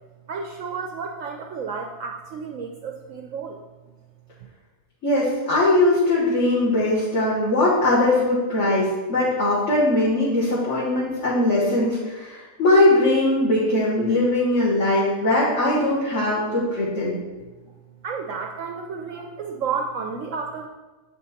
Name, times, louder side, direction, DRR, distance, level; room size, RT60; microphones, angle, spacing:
voice 1, 0.3-3.6 18.0-20.7, right 5 dB, 70° right, 3 dB, 0.8 m, -31 dB
voice 2, 5.0-17.2, left 1 dB, 50° left, -8 dB, 1.7 m, -20 dB
7.3 x 4.6 x 4.1 m, 1.2 s
omnidirectional pair, 1.7 m